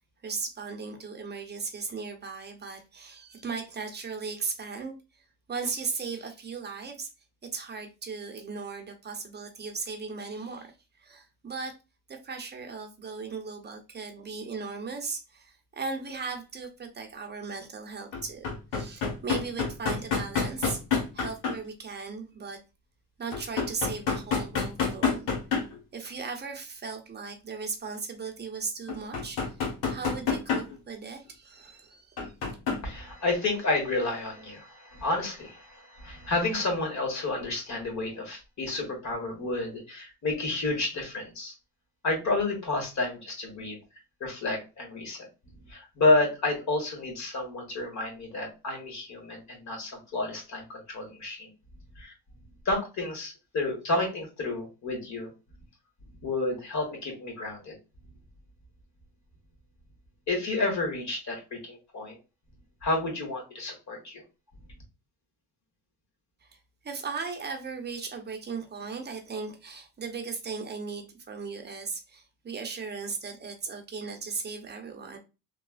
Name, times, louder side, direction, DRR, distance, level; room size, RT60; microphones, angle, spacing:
voice 1, 0.2-7.1 7.4-10.7 11.0-11.8 12.1-20.8 21.1-22.6 23.2-25.3 25.9-29.4 29.9-32.2 66.4-66.6 66.8-75.2, right 4 dB, 25° right, 0.9 m, -37 dB
sound 1, 16.1-16.2 18.1-21.6 23.3-25.8 26.0-26.1 28.9-30.8 32.2-32.8 33.4-33.5, left 5 dB, 75° left, 1.2 m, -28 dB
voice 2, 32.8-41.5 42.0-43.8 44.2-45.3 45.7-51.5 52.0-52.1 52.6-55.3 56.2-57.8 60.3-62.2 62.8-64.2, left 2 dB, 45° left, 1.5 m, -30 dB
3.2 x 2.3 x 2.4 m
supercardioid pair, 80°, 39 cm